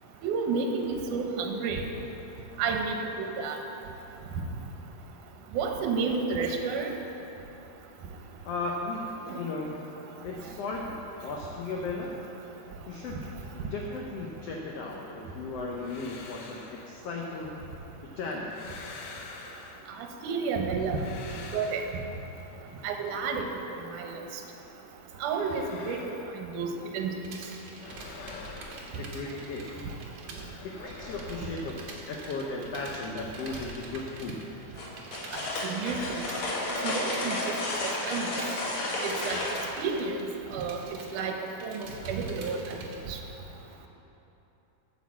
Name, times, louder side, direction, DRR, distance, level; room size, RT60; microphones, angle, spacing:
voice 1, 0.2-1.8 2.6-3.6 5.5-7.0 9.3-9.4 20.2-21.0 21.5-21.8 22.8-23.5 23.9-24.2 25.2-26.0 26.4-27.1 35.3-36.2 36.8-37.5 37.8-38.3 39.0-39.4 39.8-40.2 40.5-40.8 41.1-41.3 41.6-42.8 43.1-43.2, right 5 dB, 75° right, 3 dB, 2.3 m, -31 dB
voice 2, 8.4-9.0 9.3-9.8 10.2-10.9 11.2-12.1 12.9-13.2 13.7-16.6 16.9-17.5 18.2-18.6 29.0-29.7 30.6-31.8 32.1-34.4, left 3 dB, 90° left, -1 dB, 1.3 m, -35 dB
sound 1, 15.6-17.8 18.2-20.2 20.6-22.5 24.9-27.1 27.4-29.7 30.0-32.5 32.8-35.2, left 3 dB, 70° left, 1.7 m, -47 dB
sound 2, 27.2-30.5 30.7-43.0, right 3 dB, 60° right, 1.9 m, -46 dB
sound 3, 34.8-39.7, left 2 dB, 55° left, 1.8 m, -32 dB
9.2 x 6.4 x 7.2 m, 3.0 s
omnidirectional pair, 3.9 m